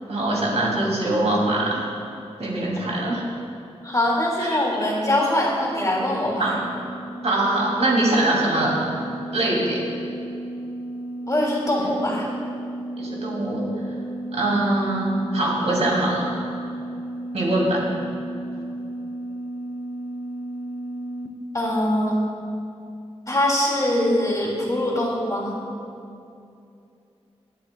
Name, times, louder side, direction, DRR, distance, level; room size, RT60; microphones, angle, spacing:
voice 1, 0.1-1.9 2.4-3.3 4.4-4.6 6.4-6.7 7.2-8.8 9.3-9.8 11.8-11.9 13.0-13.6 14.3-16.2 17.3-17.8, right 1 dB, 75° right, -4 dB, 2.7 m, -23 dB
voice 2, 3.8-6.5 11.3-12.3 21.5-22.2 23.3-25.5, left 1 dB, 30° left, -4 dB, 2.7 m, -23 dB
sound 1, 5.1-21.3, right 1 dB, 20° right, 0.8 m, -34 dB
20.5 x 9.0 x 2.3 m, 2.6 s
wide cardioid pair, 95°, 11 cm